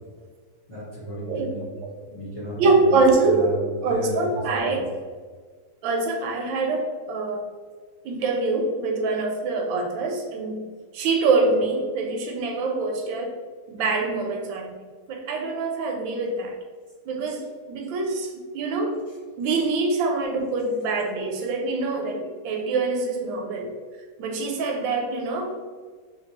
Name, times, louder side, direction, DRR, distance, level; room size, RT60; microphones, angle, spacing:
voice 1, 0.7-1.7 2.1-4.3 4.6-4.9, equal, 30° left, -8 dB, 0.6 m, -34 dB
voice 2, 2.6-3.5 3.8-4.8 5.8-7.4 8.0-10.6 10.9-13.3 13.7-14.7 15.1-16.5 17.1-19.0 19.4-23.7 24.2-25.6, right 3 dB, 85° right, 2 dB, 1.3 m, -24 dB
3.2 x 2.8 x 2.9 m, 1.5 s
omnidirectional pair, 2.0 m